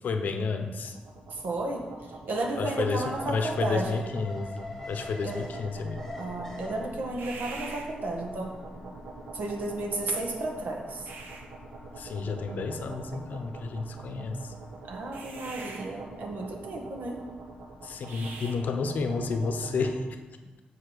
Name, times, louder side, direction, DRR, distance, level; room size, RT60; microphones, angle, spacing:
voice 1, 0.0-1.0 2.6-6.1 12.0-14.5 17.8-20.1, left 4 dB, 65° left, 6 dB, 0.8 m, -31 dB
sound 1, 0.7-20.0, right 3 dB, 90° right, 1.2 m, -44 dB
voice 2, 1.3-4.0 5.2-5.5 6.1-8.6 9.3-11.1 14.9-17.2, right 2 dB, 70° right, 1 dB, 1.6 m, -33 dB
Alarm, 3.0-19.1 19.4-19.5, left 2 dB, 10° left, 1.4 m, -47 dB
6.9 x 6.6 x 5.2 m, 1.2 s
wide cardioid pair, 125°, 3 cm